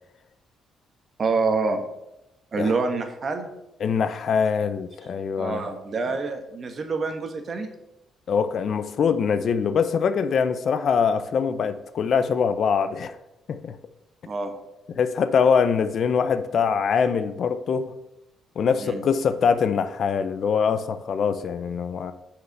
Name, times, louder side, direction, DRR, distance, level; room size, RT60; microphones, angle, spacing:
voice 1, 1.2-1.8 2.5-3.5 5.4-7.7 14.3-14.5 18.8-19.0, right 4 dB, 45° right, 6 dB, 1.2 m, -26 dB
voice 2, 3.8-5.7 8.3-13.2 13.5-13.8 14.9-17.9 18.6-22.1, left 6 dB, 60° left, 11 dB, 0.6 m, -23 dB
6.5 x 4.9 x 6.6 m, 0.88 s
cardioid pair, 90°, 0 cm